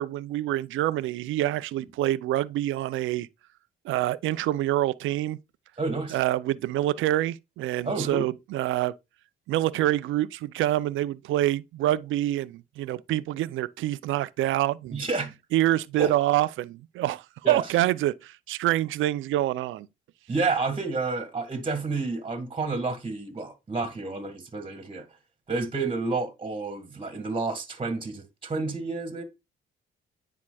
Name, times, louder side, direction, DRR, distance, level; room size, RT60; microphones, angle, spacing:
voice 1, 0.0-3.3 3.8-5.4 6.1-8.9 9.5-15.0 15.5-19.9, right 14 dB, 80° right, 0.5 m, -26 dB
voice 2, 5.8-6.2 7.8-8.3 14.9-15.3 16.0-16.1 17.4-17.7 20.3-25.0 25.5-29.2, right 3 dB, 25° right, 1.9 m, -30 dB
9.8 x 4.6 x 2.3 m
cardioid pair, 90°, 20 cm